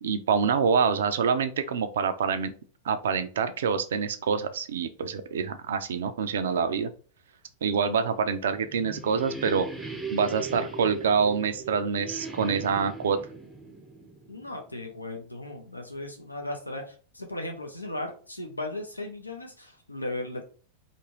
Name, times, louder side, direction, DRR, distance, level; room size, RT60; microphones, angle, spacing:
voice 1, 0.0-2.5 2.8-6.9 7.6-9.7 10.1-13.2, right 6 dB, 60° right, 10 dB, 0.3 m, -26 dB
sound 1, 8.6-15.0, right 3 dB, 5° right, 0.5 m, -39 dB
voice 2, 14.3-20.4, left 2 dB, 85° left, 3 dB, 0.5 m, -36 dB
2.6 x 2.5 x 2.9 m, 0.38 s
figure-of-eight pair, 90°, 0 cm